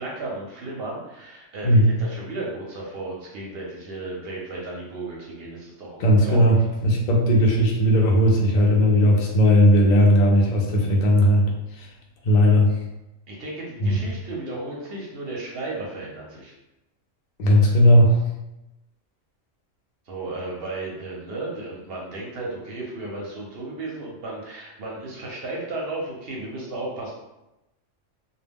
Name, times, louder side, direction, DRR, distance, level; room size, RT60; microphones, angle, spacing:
voice 1, 0.0-6.6 13.3-16.5 20.1-27.1, right 2 dB, 60° right, -3 dB, 0.7 m, -34 dB
voice 2, 1.6-2.0 6.0-11.9 12.2-12.8 13.8-14.0 17.4-18.2, equal, 70° left, -2 dB, 0.4 m, -17 dB
2.2 x 2.0 x 3.4 m, 0.95 s
omnidirectional pair, 1.3 m